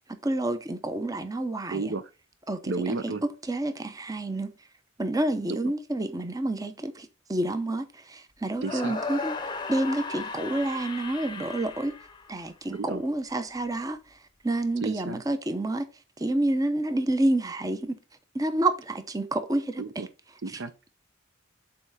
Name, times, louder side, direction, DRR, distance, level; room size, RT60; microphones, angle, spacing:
voice 1, 0.2-1.9 2.5-3.1 3.5-4.5 5.0-9.4 9.7-12.0 12.3-14.2 14.4-15.8 16.2-17.9 18.3-20.0 20.5-20.6, right 1 dB, 20° right, 0.7 m, -29 dB
voice 2, 1.7-2.0 2.7-3.2 5.5-5.7 8.6-9.0 12.7-13.0 14.8-15.2 19.8-20.1 20.4-20.9, right 4 dB, 60° right, 0.6 m, -32 dB
sound 1, 8.6-12.8, left 4 dB, 20° left, 0.7 m, -36 dB
6.8 x 4.2 x 4.8 m
head